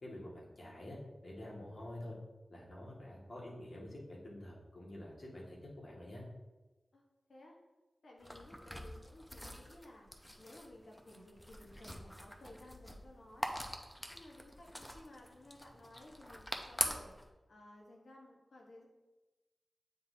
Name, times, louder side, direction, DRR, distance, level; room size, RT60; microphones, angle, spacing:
voice 1, 0.0-2.2 2.5-6.2, left 1 dB, 55° left, -5 dB, 1.9 m, -48 dB
voice 2, 8.0-10.1 10.4-13.5 14.1-17.1 17.5-18.9, left 1 dB, 75° left, -1 dB, 1.2 m, -56 dB
sound 1, 8.2-17.3, equal, 10° left, 0.7 m, -44 dB
8.7 x 4.0 x 2.8 m, 1.1 s
cardioid pair, 50°, 0 cm